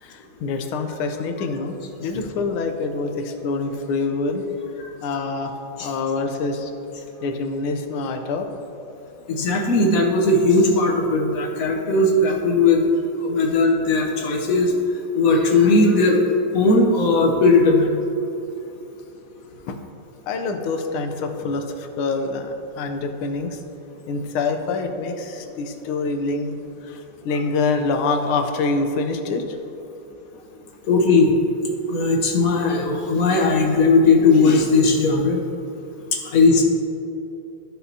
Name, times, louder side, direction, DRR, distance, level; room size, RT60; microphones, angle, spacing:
voice 1, 0.0-4.4 5.0-5.5 5.8-6.7 7.2-8.5 19.7-19.8 20.3-23.6 24.1-26.6 26.9-27.0 27.2-29.4, left 3 dB, 80° left, 6 dB, 1.6 m, -25 dB
voice 2, 9.3-12.8 13.2-14.7 15.1-16.2 16.5-18.0 30.9-31.3 31.9-35.4 36.3-36.6, left 3 dB, 60° left, 0 dB, 1.0 m, -17 dB
13.5 x 6.0 x 2.7 m, 3.0 s
omnidirectional pair, 2.4 m